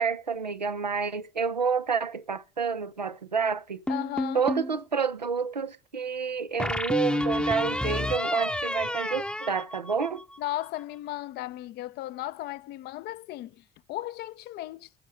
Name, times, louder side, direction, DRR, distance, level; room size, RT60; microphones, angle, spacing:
voice 1, 0.0-3.8 4.3-10.3, right 5 dB, 90° right, 0.6 m, -29 dB
voice 2, 3.9-4.4 10.4-15.0, left 15 dB, 50° left, 0.6 m, -36 dB
sound 1, 3.9-4.8 6.6-10.4, left 1 dB, 5° left, 0.8 m, -30 dB
14.5 x 6.3 x 6.2 m
figure-of-eight pair, 55°, 21 cm